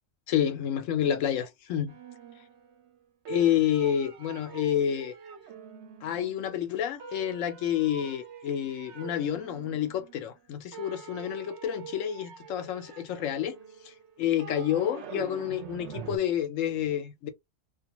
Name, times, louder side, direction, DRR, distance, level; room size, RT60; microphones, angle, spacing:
voice 1, 0.3-2.0 3.3-5.1 6.0-13.6 13.8-17.3, left 10 dB, 80° left, 1.0 m, -29 dB
sound 1, 1.9-3.0 3.2-6.6 7.0-10.5 10.7-16.2, right 7 dB, 70° right, 0.9 m, -44 dB
2.4 x 2.3 x 2.9 m
omnidirectional pair, 1.3 m